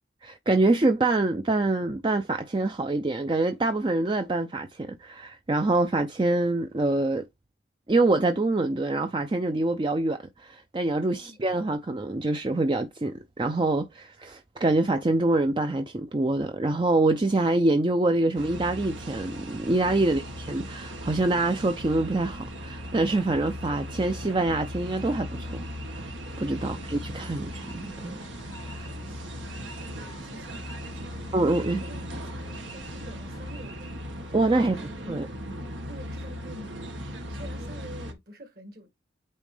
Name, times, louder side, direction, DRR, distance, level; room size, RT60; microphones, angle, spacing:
voice 1, 0.2-7.3 7.9-26.1 26.4-28.2 28.7-28.9 31.3-31.8 34.3-34.8 35.1-35.3, right 2 dB, 25° right, 0.4 m, -25 dB
sound 1, 18.3-38.1, equal, 85° right, 1.7 m, -38 dB
sound 2, 26.7-33.5, left 2 dB, 20° left, 0.6 m, -49 dB
voice 2, 28.7-31.3 31.8-34.0 34.5-35.2 35.9-36.7 37.1-38.9, right 1 dB, 50° right, 1.8 m, -48 dB
8.6 x 3.6 x 3.3 m
head